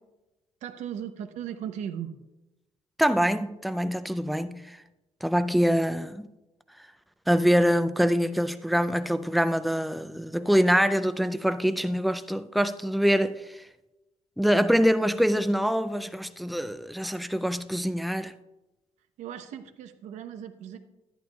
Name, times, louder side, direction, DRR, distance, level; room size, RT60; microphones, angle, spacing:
voice 1, 0.6-2.1 19.2-20.8, right 9 dB, 85° right, 0.7 m, -37 dB
voice 2, 3.0-4.8 5.2-6.3 7.3-13.7 14.4-18.3, equal, ahead, 0.3 m, -24 dB
11.0 x 10.5 x 2.3 m
cardioid pair, 140°, 12 cm